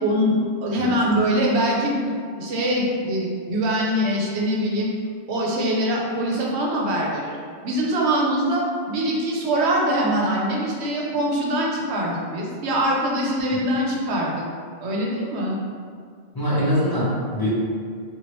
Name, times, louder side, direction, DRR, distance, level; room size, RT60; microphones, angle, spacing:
voice 1, 0.0-2.0 2.3-4.9 5.3-7.4 7.6-14.5 14.8-15.6, equal, 90° right, -3 dB, 0.9 m, -23 dB
voice 2, 16.3-17.5, equal, 25° left, -11 dB, 0.7 m, -23 dB
2.9 x 2.4 x 3.0 m, 2.1 s
omnidirectional pair, 1.1 m